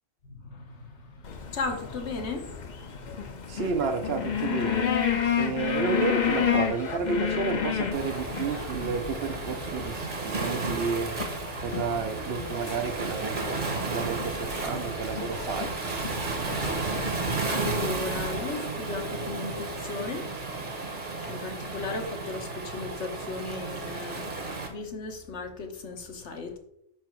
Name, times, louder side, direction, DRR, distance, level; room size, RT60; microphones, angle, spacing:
voice 1, 0.2-3.6 17.1-20.3 21.2-26.6, left 3 dB, 70° left, 4 dB, 1.3 m, -36 dB
sound 1, 1.2-18.4, left 8 dB, 45° left, 0.7 m, -32 dB
voice 2, 3.5-4.9 5.3-11.2 11.6-15.7, right 5 dB, 60° right, 7 dB, 0.9 m, -31 dB
Waves surf, 7.9-24.7, right 3 dB, 45° right, 1.2 m, -33 dB
5.7 x 4.7 x 4.5 m, 0.75 s
omnidirectional pair, 1.2 m